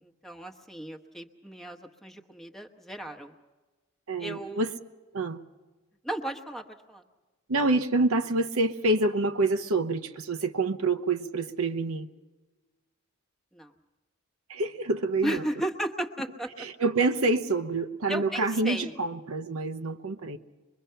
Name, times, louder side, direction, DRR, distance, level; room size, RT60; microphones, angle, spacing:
voice 1, 0.0-3.3 4.2-4.7 6.0-7.0 13.5-13.7 15.2-16.5 18.1-18.9, right 1 dB, ahead, 2 dB, 1.1 m, -35 dB
voice 2, 4.1-4.7 5.1-5.4 7.5-12.1 14.5-15.4 16.6-20.4, right 2 dB, 80° right, 9 dB, 0.9 m, -27 dB
24.5 x 22.0 x 5.7 m, 1.2 s
head